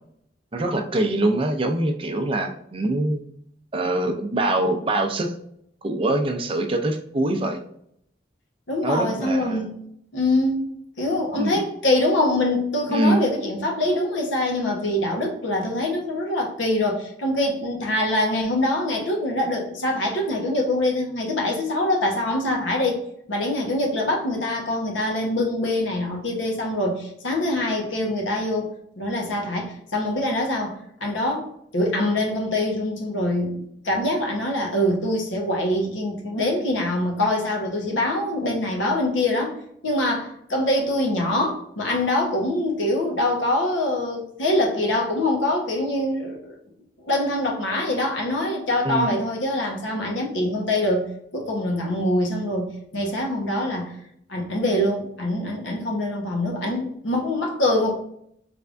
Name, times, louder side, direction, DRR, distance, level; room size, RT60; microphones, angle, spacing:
voice 1, 0.5-3.2 3.7-5.3 5.8-7.6 8.8-9.7 11.4-11.6 12.9-13.2 48.8-49.2, right 1 dB, 30° right, 4 dB, 0.5 m, -24 dB
voice 2, 8.7-9.7 10.1-10.6 11.0-23.0 23.3-39.6 39.8-46.6 47.0-51.1 51.3-53.9 54.3-57.9, left 1 dB, 90° left, 0 dB, 1.0 m, -24 dB
3.4 x 3.3 x 2.5 m, 0.70 s
head